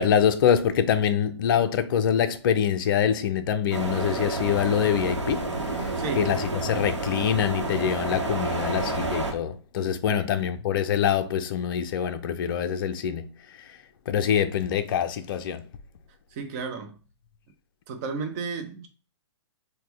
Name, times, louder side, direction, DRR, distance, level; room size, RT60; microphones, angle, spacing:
voice 1, 0.0-5.5 6.2-13.3 14.1-15.6, left 8 dB, 50° left, 0.4 m, -24 dB
sound 1, 3.7-9.3, right 2 dB, 85° right, 0.9 m, -29 dB
voice 2, 6.0-6.3 10.1-10.4 16.3-17.0 17.9-18.9, right 5 dB, 35° right, 0.7 m, -33 dB
4.2 x 2.2 x 3.2 m
figure-of-eight pair, 125°, 15 cm